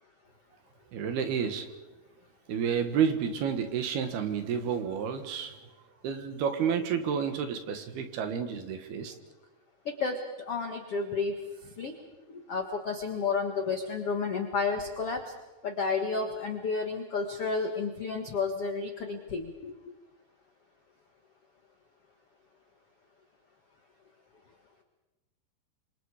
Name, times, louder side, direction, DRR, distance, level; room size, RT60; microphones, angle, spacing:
voice 1, 0.9-1.7 2.5-5.6 6.0-9.1, right 7 dB, 65° right, 7 dB, 3.2 m, -30 dB
voice 2, 9.8-10.2 10.5-11.4 11.8-11.9 12.3-15.3 15.6-19.7, left 4 dB, 85° left, 4 dB, 1.3 m, -31 dB
29.0 x 25.5 x 5.0 m, 1.1 s
omnidirectional pair, 5.4 m